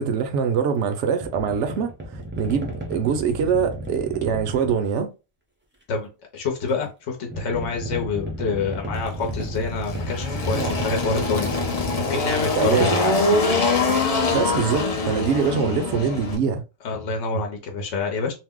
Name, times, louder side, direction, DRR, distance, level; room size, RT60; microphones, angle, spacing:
voice 1, 0.0-1.9 2.4-5.1 10.5-10.8 12.6-12.9 14.3-16.6, right 6 dB, 70° right, 0.8 m, -23 dB
sound 1, 1.2-4.9 7.3-12.0 13.0-13.2 14.3-15.5, equal, 15° right, 0.4 m, -34 dB
voice 2, 5.9-11.6 11.9-13.2 16.8-18.3, left 4 dB, 65° left, 1.0 m, -27 dB
Engine, 8.9-16.4, left 3 dB, 45° left, 0.5 m, -24 dB
2.6 x 2.1 x 3.5 m
omnidirectional pair, 1.3 m